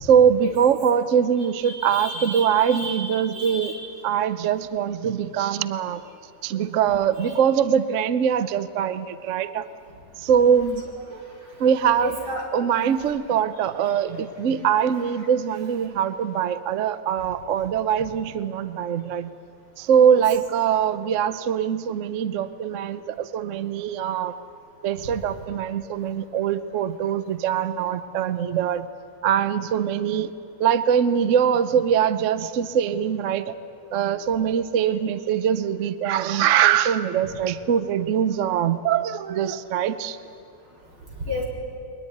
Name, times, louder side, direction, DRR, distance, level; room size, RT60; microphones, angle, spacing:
voice 1, 0.0-3.7 4.0-6.0 6.4-9.6 10.2-10.8 11.6-12.1 12.5-19.3 19.8-24.3 24.8-28.9 29.2-30.3 30.6-33.5 33.9-40.2, right 8 dB, 65° right, 12 dB, 0.7 m, -22 dB
voice 2, 1.6-4.0 10.9-11.2 12.0-12.4 13.8-13.9 20.1-20.2 41.2-41.4, left 1 dB, 80° right, -2 dB, 4.9 m, -33 dB
21.5 x 20.5 x 9.4 m, 2.4 s
omnidirectional pair, 2.2 m